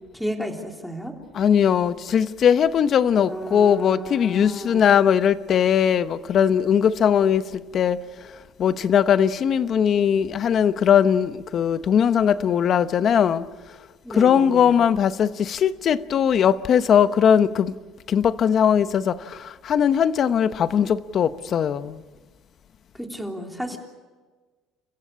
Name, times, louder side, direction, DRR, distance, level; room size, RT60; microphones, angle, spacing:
voice 1, 0.1-1.1 3.3-4.8 14.0-14.7 23.0-23.8, equal, ahead, 3.4 m, -32 dB
voice 2, 1.3-8.0 8.6-13.4 14.1-17.7 18.1-22.0, left 8 dB, 45° left, 0.9 m, -20 dB
29.5 x 15.5 x 8.6 m
cardioid pair, 120°, 0 cm